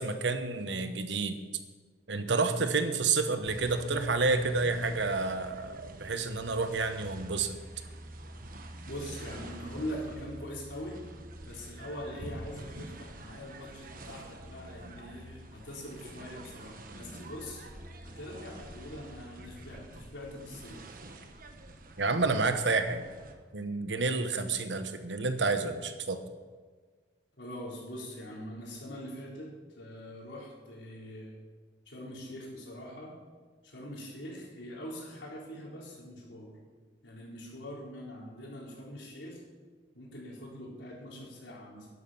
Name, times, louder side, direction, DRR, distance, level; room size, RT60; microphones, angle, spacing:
voice 1, 0.0-1.4 2.1-7.6 22.0-23.0 23.5-26.2, right 3 dB, 80° right, 8 dB, 1.1 m, -29 dB
sound 1, 3.4-23.4, right 1 dB, 50° right, 1.2 m, -47 dB
voice 2, 8.9-11.0 11.4-17.6 18.0-20.8 27.4-31.4 31.9-33.1 33.6-36.5 37.0-39.4 39.9-41.9, equal, 80° left, -3 dB, 4.1 m, -43 dB
12.0 x 11.0 x 5.8 m, 1.5 s
head